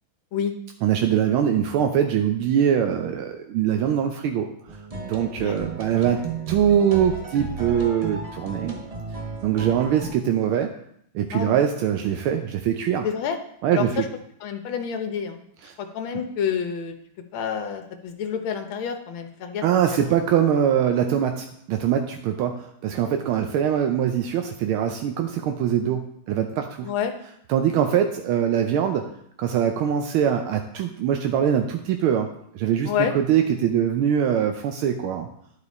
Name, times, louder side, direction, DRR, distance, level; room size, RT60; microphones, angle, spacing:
voice 1, 0.8-6.2 6.5-8.8 9.4-10.7 11.1-13.0 13.6-14.1 15.6-15.7 19.6-26.9 27.5-29.1 29.4-32.3 32.5-35.3, right 9 dB, 85° right, 5 dB, 1.5 m, -23 dB
sound 1, 4.7-10.1, right 5 dB, 65° right, 0.3 m, -34 dB
voice 2, 13.0-13.4 13.7-14.0 14.4-15.4 15.8-16.9 17.3-19.6 19.9-20.1 26.8-27.1 32.9-33.1, left 7 dB, 75° left, 6 dB, 1.6 m, -28 dB
11.0 x 4.9 x 4.1 m, 0.71 s
omnidirectional pair, 2.3 m